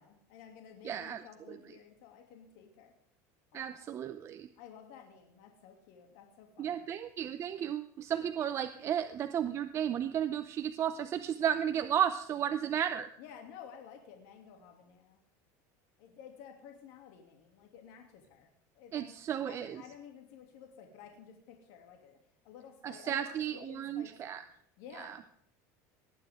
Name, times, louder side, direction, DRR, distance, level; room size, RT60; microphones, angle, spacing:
voice 1, 0.0-2.9 3.5-4.0 4.6-6.8 13.2-15.2 16.0-22.2 22.4-24.4 24.8-25.2, left 8 dB, 70° left, 3 dB, 2.7 m, -53 dB
voice 2, 0.8-1.2 1.5-1.6 3.5-4.5 6.6-13.1 18.9-19.8 22.8-24.4 24.9-25.2, right 9 dB, 35° right, 10 dB, 0.6 m, -33 dB
19.0 x 9.1 x 3.7 m, 0.69 s
supercardioid pair, 135°, 9 cm